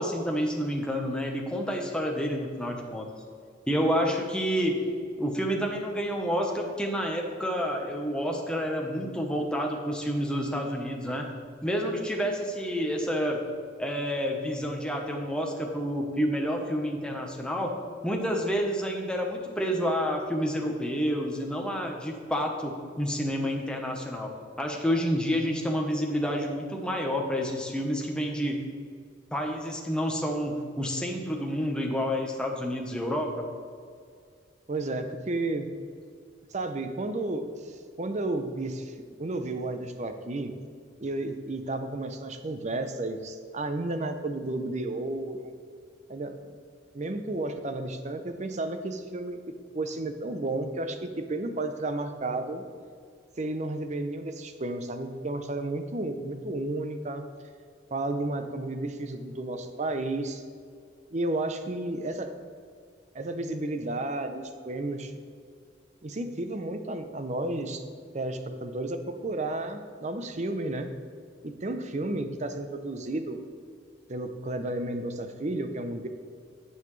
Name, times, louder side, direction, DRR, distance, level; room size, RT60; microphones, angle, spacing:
voice 1, 0.0-3.1 3.7-4.8 5.2-11.3 11.6-13.4 13.8-17.7 18.0-24.3 24.6-28.7 29.3-33.4, equal, 5° left, 0 dB, 1.0 m, -29 dB
voice 2, 34.7-35.7 36.5-38.9 39.2-40.5 41.0-45.5 46.1-46.3 46.9-49.4 49.7-52.7 53.4-57.2 57.9-60.4 61.1-62.3 63.1-65.1 66.0-67.8 68.1-70.9 71.4-73.4 74.1-76.1, right 2 dB, 40° right, 7 dB, 0.7 m, -32 dB
16.0 x 5.7 x 3.2 m, 2.1 s
head